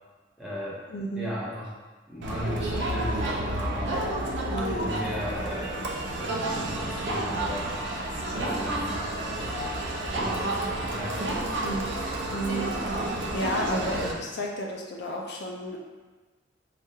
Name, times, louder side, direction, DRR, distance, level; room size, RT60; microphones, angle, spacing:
voice 1, 0.4-0.8 1.1-1.7 2.1-4.0 4.6-5.8 6.2-7.8 8.3-9.0 10.2-10.5 10.8-11.5, equal, 5° right, -8 dB, 0.9 m, -35 dB
voice 2, 0.9-1.3 4.5-4.8 11.6-11.9 12.3-15.8, equal, 60° left, 0 dB, 0.4 m, -32 dB
Crowd, 2.2-14.1, right 1 dB, 65° right, 0.5 m, -30 dB
4.9 x 2.3 x 2.7 m, 1.3 s
head